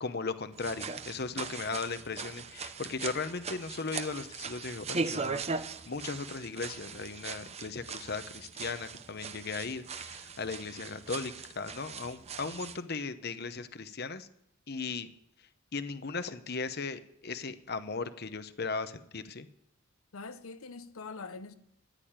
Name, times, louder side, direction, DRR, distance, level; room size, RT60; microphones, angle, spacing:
voice 1, 0.0-5.4 5.9-14.3 14.7-15.1 15.7-19.5, left 4 dB, 50° left, 0.9 m, -37 dB
sound 1, 0.5-12.8, right 4 dB, 30° right, 0.8 m, -39 dB
voice 2, 20.1-21.5, left 4 dB, 80° left, 0.8 m, -43 dB
15.0 x 10.5 x 8.9 m
head